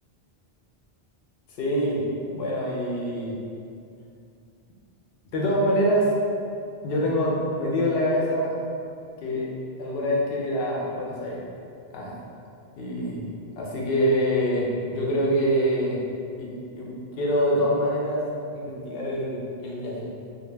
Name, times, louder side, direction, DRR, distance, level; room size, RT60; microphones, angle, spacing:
voice 1, 1.6-2.1 2.3-3.4 5.3-6.2 6.8-8.6 9.2-9.5 9.8-11.5 11.9-12.1 12.8-16.0 16.4-16.5 16.8-16.9 17.2-18.2 18.5-20.1, equal, 70° left, -3 dB, 0.8 m, -25 dB
2.2 x 2.1 x 3.1 m, 2.4 s
omnidirectional pair, 1.1 m